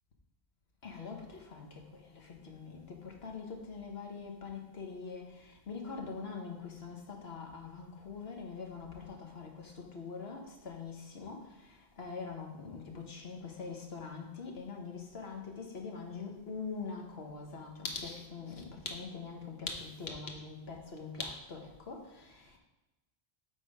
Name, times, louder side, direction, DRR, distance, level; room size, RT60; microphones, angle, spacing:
voice 1, 0.8-22.6, left 4 dB, 70° left, 2 dB, 1.4 m, -43 dB
8.3 x 3.9 x 5.3 m, 0.99 s
omnidirectional pair, 1.1 m